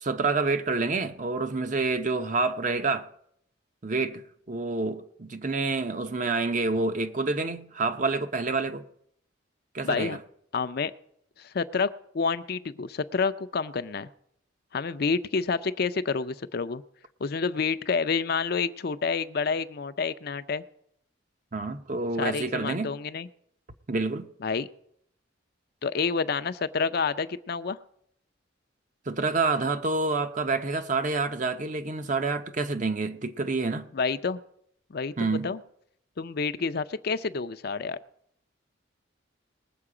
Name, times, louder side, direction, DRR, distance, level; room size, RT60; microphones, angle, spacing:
voice 1, 0.0-3.1 3.8-8.8 9.7-10.2 21.5-23.0 23.9-24.3 29.1-33.9 35.2-35.5, right 3 dB, 40° right, 0.7 m, -28 dB
voice 2, 9.8-10.2 10.5-10.9 11.4-11.9 12.1-14.1 14.7-16.8 17.2-20.6 22.2-23.3 24.4-24.7 25.8-27.8 33.9-34.4 34.9-35.1 35.4-35.6 36.2-38.0, left 5 dB, 50° left, 0.5 m, -28 dB
20.0 x 7.6 x 4.9 m
head